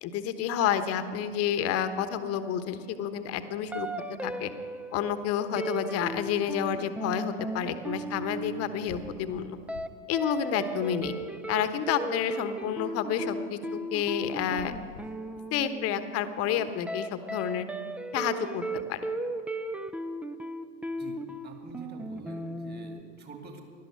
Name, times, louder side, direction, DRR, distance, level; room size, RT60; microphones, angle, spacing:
voice 1, 0.0-3.9 4.2-4.5 4.9-9.6 10.1-11.1 11.5-14.7 15.5-17.6 18.1-18.6 18.9-19.0, left 9 dB, 40° left, 11 dB, 1.1 m, -30 dB
sound 1, 3.7-9.3 9.7-9.9 10.1-23.0, right 1 dB, 5° right, 0.5 m, -36 dB
sound 2, 8.9-10.2 10.5-11.6 14.4-16.0, left 7 dB, 65° left, 1.3 m, -49 dB
voice 2, 21.0-23.6, right 4 dB, 25° right, 4 dB, 2.4 m, -46 dB
17.5 x 12.0 x 6.5 m, 2.2 s
figure-of-eight pair, 80°, 37 cm